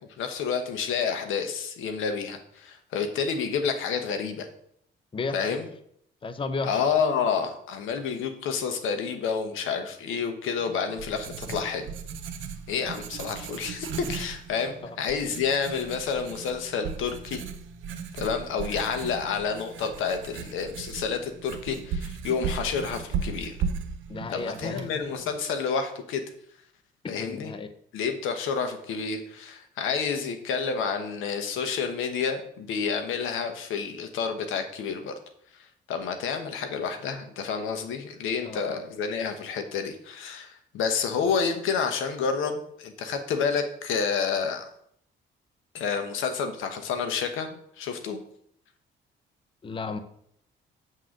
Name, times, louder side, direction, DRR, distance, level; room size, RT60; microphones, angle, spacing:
voice 1, 0.2-4.5 5.3-5.7 6.6-11.9 12.7-17.4 18.2-23.6 24.3-26.2 27.1-27.5 27.9-35.1 35.6-44.6 45.7-48.2, left 6 dB, 90° left, 7 dB, 1.1 m, -29 dB
voice 2, 5.1-5.6 6.2-6.7 14.8-15.0 24.1-24.9 27.0-27.7 38.4-38.8 49.6-50.0, left 3 dB, 25° left, 10 dB, 0.6 m, -33 dB
Writing, 10.6-25.4, right 6 dB, 75° right, 0.8 m, -37 dB
7.6 x 3.8 x 6.4 m, 0.68 s
cardioid pair, 90°, 20 cm